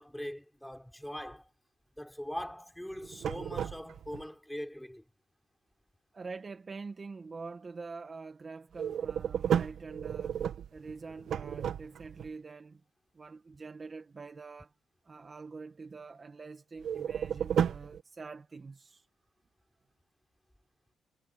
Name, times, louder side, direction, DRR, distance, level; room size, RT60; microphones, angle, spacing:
voice 1, 0.0-1.4 2.0-5.0, equal, 5° left, 6.2 m, -41 dB
sound 1, 2.9-4.2 8.7-12.3 16.8-18.0, right 8 dB, 65° right, 1.9 m, -33 dB
voice 2, 6.1-10.4 10.7-12.8 13.2-14.7 15.1-19.1, right 4 dB, 30° right, 1.7 m, -45 dB
cardioid pair, 90°, 0 cm